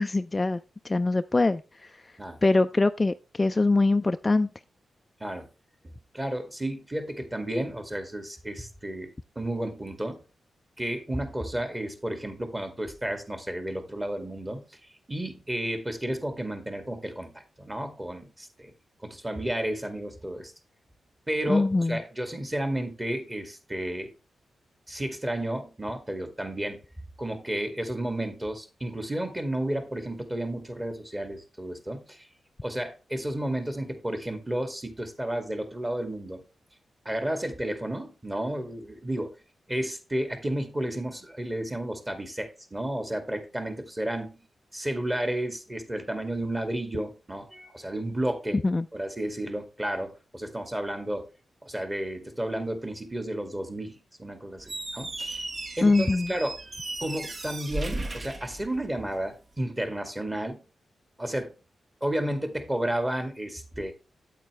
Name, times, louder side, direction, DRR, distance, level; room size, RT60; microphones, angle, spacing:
voice 1, 0.0-2.0 2.4-4.5 21.5-22.0 48.6-48.9 55.8-56.3, left 2 dB, 25° left, 0.4 m, -23 dB
voice 2, 6.1-10.2 10.8-14.6 15.1-18.7 19.0-20.5 21.3-24.1 24.9-26.8 27.2-32.3 32.6-36.4 37.1-39.4 39.7-44.4 44.7-48.6 48.9-51.3 51.6-55.5 55.8-56.6 57.0-60.6 61.2-61.5 62.0-63.9, right 1 dB, 15° right, 2.2 m, -32 dB
Squeak, 54.6-59.2, right 2 dB, 40° right, 1.4 m, -36 dB
8.7 x 8.4 x 3.2 m
cardioid pair, 100°, 0 cm